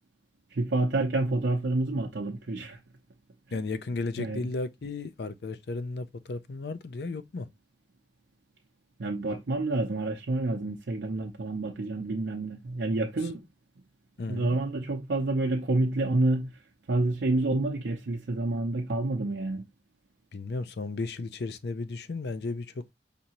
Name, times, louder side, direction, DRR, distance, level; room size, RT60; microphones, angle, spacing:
voice 1, 0.5-2.8 4.2-4.4 9.0-13.4 14.3-16.5 16.9-19.6, right 2 dB, 75° right, 0.6 m, -28 dB
voice 2, 3.5-7.5 14.2-14.6 20.3-22.9, left 3 dB, 65° left, 0.5 m, -34 dB
5.2 x 2.7 x 2.8 m
head